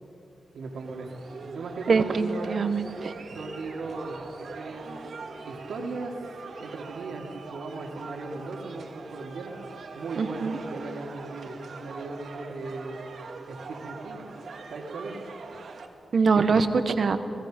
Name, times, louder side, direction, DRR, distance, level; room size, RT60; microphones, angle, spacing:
voice 1, 0.5-1.1 1.4-2.7 3.3-4.9 5.4-6.1 6.6-9.6 9.9-13.0 13.5-14.2 14.7-15.2, right 3 dB, 85° right, 1 dB, 2.8 m, -37 dB
sound 1, 0.6-15.9, right 4 dB, 65° right, 1.6 m, -42 dB
voice 2, 1.9-3.1 10.2-10.6 16.1-17.2, right 4 dB, 45° right, 10 dB, 1.0 m, -23 dB
30.0 x 17.5 x 5.2 m, 2.7 s
wide cardioid pair, 180°, 0 cm